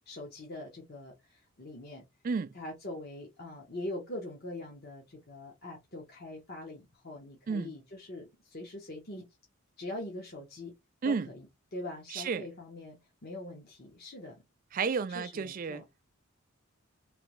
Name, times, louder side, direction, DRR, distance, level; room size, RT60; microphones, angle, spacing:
voice 1, 0.1-2.0 2.5-9.3 9.8-10.7 11.0-14.4 15.1-15.8, left 1 dB, 45° left, 0.9 m, -43 dB
voice 2, 12.1-12.4 14.7-15.8, right 5 dB, 40° right, 0.3 m, -31 dB
3.3 x 3.0 x 3.0 m
head